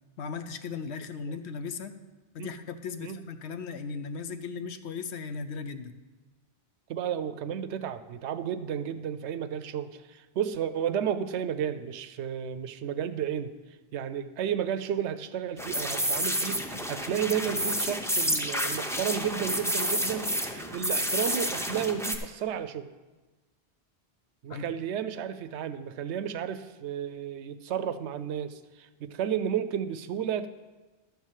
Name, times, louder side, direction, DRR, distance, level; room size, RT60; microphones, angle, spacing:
voice 1, 0.2-2.0 2.3-6.0 24.5-24.6, left 5 dB, 80° left, 10 dB, 1.0 m, -37 dB
voice 2, 6.9-13.5 13.9-22.9 24.4-30.5, right 9 dB, 85° right, 12 dB, 0.9 m, -32 dB
sound 1, 15.6-22.2, equal, 5° left, 0.5 m, -30 dB
11.5 x 4.7 x 7.4 m, 1.2 s
omnidirectional pair, 1.1 m